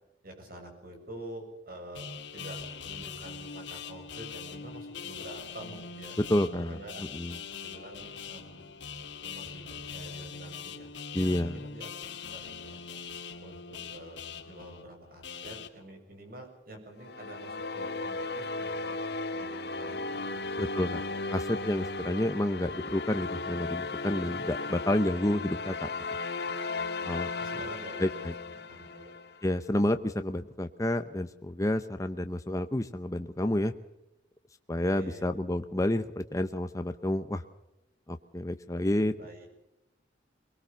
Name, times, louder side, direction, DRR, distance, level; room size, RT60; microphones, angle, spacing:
voice 1, 0.2-6.2 6.7-7.0 7.6-8.7 9.2-11.9 12.3-12.8 13.4-19.0 19.3-20.5 26.4-29.2 34.7-35.3 39.2-39.5, right 1 dB, 50° right, 4 dB, 7.3 m, -48 dB
sound 1, 1.9-15.7, left 6 dB, 75° left, 2.6 m, -42 dB
voice 2, 6.3-6.8 7.1-7.3 11.1-11.6 20.6-21.0 21.3-25.9 27.1-27.3 28.0-28.3 29.4-33.7 34.7-37.4 38.1-39.1, left 1 dB, 15° left, 8 dB, 0.7 m, -29 dB
sound 2, 17.0-29.4, left 3 dB, 60° left, 1.8 m, -35 dB
23.5 x 20.5 x 7.0 m, 0.91 s
head